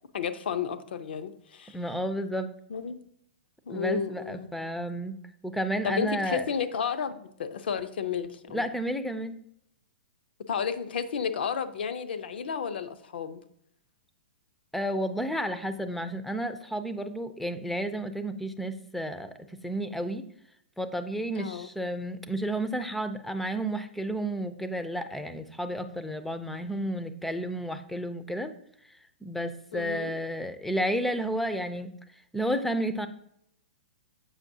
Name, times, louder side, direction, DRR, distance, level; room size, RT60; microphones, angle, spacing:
voice 1, 0.1-1.8 2.7-3.0 3.7-4.5 5.8-8.7 10.5-13.4 21.3-21.7 29.7-30.1, left 6 dB, 75° left, 11 dB, 0.6 m, -32 dB
voice 2, 1.7-2.5 3.7-5.1 5.4-6.5 8.5-9.4 14.7-19.3 19.6-20.2 20.8-28.5 29.2-31.9 32.3-33.1, right 1 dB, 5° left, 9 dB, 0.4 m, -31 dB
7.3 x 5.3 x 2.7 m, 0.72 s
hypercardioid pair, 140°, 6 cm